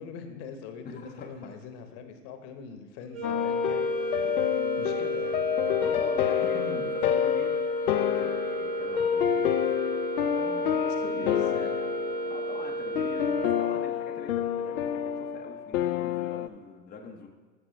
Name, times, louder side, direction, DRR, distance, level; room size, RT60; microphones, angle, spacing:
voice 1, 0.0-3.9 4.8-5.4 6.5-6.9 10.8-11.7, left 6 dB, 45° left, 7 dB, 1.2 m, -42 dB
voice 2, 0.8-1.5 4.1-5.1 5.8-9.6 10.3-11.4 12.3-17.3, left 4 dB, 20° left, 1 dB, 0.8 m, -44 dB
sound 1, 3.1-14.0, right 2 dB, 30° right, 1.2 m, -33 dB
sound 2, 3.2-16.5, left 11 dB, 70° left, 0.6 m, -28 dB
13.0 x 5.9 x 3.2 m, 1.4 s
hypercardioid pair, 95°, 44 cm